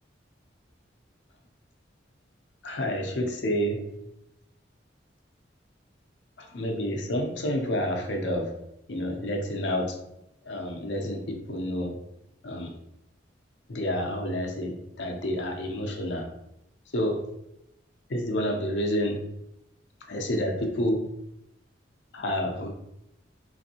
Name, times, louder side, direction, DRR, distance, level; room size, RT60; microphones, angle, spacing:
voice 1, 2.6-3.9 6.4-8.6 8.9-10.0 10.5-12.0 12.4-12.8 13.7-16.3 16.9-17.3 18.1-19.3 20.1-21.1 22.1-22.7, equal, 70° left, 3 dB, 0.6 m, -29 dB
3.9 x 2.6 x 2.8 m, 0.82 s
head